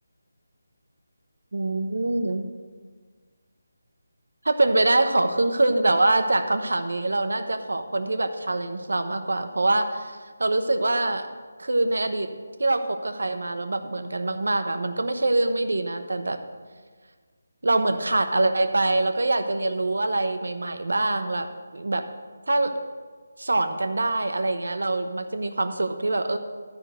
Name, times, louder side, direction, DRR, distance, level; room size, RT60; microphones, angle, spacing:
voice 1, 1.5-2.5 4.4-11.3 11.6-16.4 17.6-21.5 21.7-22.0 22.5-22.7 23.4-26.4, right 2 dB, 85° right, 7 dB, 1.0 m, -24 dB
12.5 x 4.5 x 7.8 m, 1.5 s
figure-of-eight pair, 175°, 0 cm